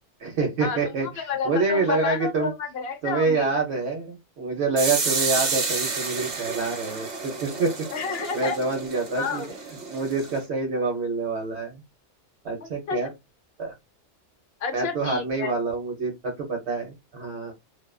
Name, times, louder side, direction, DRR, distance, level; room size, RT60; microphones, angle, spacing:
voice 1, 0.2-2.5 3.0-7.7 8.3-9.4 9.9-11.8 12.4-13.1 13.6-13.7 14.7-17.5, right 3 dB, 65° right, 0.9 m, -27 dB
voice 2, 1.2-3.5 7.9-8.6 9.2-9.5 12.6-13.0 14.6-15.5, left 5 dB, 60° left, 0.8 m, -30 dB
sound 1, 4.8-10.4, right 4 dB, 45° right, 0.6 m, -30 dB
2.4 x 2.2 x 2.3 m
omnidirectional pair, 1.3 m